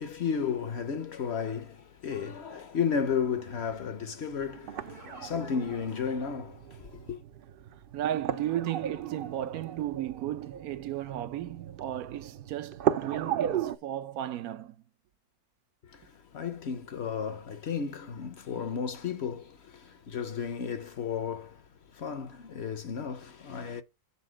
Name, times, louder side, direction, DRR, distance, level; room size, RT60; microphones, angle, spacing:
voice 1, 0.0-7.2 15.8-23.8, left 6 dB, 55° left, 0.8 m, -33 dB
sound 1, 3.1-13.8, right 10 dB, 65° right, 0.5 m, -36 dB
voice 2, 7.9-14.8, right 12 dB, 85° right, 1.1 m, -34 dB
6.9 x 4.2 x 6.3 m
omnidirectional pair, 1.5 m